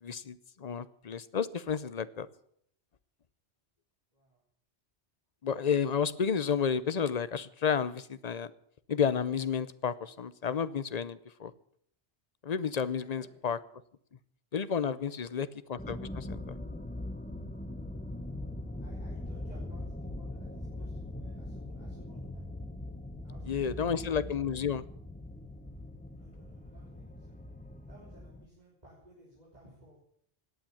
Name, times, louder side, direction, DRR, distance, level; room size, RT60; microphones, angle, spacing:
voice 1, 0.0-2.3 5.4-8.5 8.9-11.5 12.4-13.6 14.5-16.6 23.5-24.8, left 7 dB, 40° left, 16 dB, 0.7 m, -31 dB
voice 2, 4.1-4.4 12.9-13.5 15.0-15.5 18.8-22.5 23.2-24.3 26.2-27.4 27.9-30.0, right 1 dB, 35° right, -4 dB, 4.0 m, -58 dB
sound 1, 15.8-28.5, left 1 dB, 10° left, 1.0 m, -41 dB
17.5 x 9.0 x 8.7 m, 0.66 s
omnidirectional pair, 1.2 m